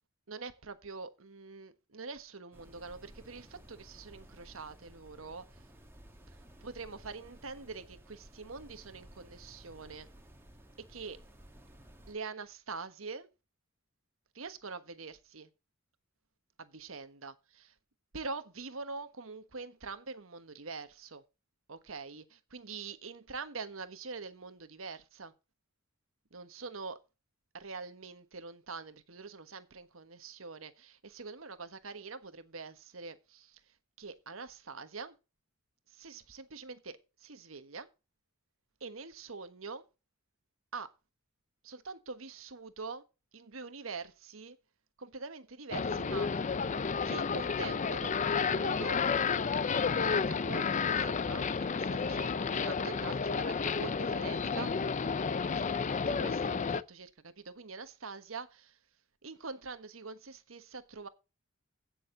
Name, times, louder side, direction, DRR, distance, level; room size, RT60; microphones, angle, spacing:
voice 1, 0.3-5.6 6.6-10.1 10.8-11.2 12.1-13.3 14.3-15.5 16.6-17.7 18.1-21.2 21.7-25.3 26.3-27.0 27.5-33.6 34.0-35.1 35.9-37.9 38.8-39.8 40.7-40.9 41.6-43.0 43.3-44.6 45.0-46.6 47.0-48.2 48.5-49.0 49.9-54.9 55.3-58.8 59.2-61.1, right 4 dB, 85° right, 1.4 m, -44 dB
sound 1, 2.5-12.1, right 1 dB, 10° right, 2.0 m, -55 dB
sound 2, 45.7-56.8, left 5 dB, 35° left, 0.5 m, -31 dB
16.0 x 6.7 x 3.9 m
head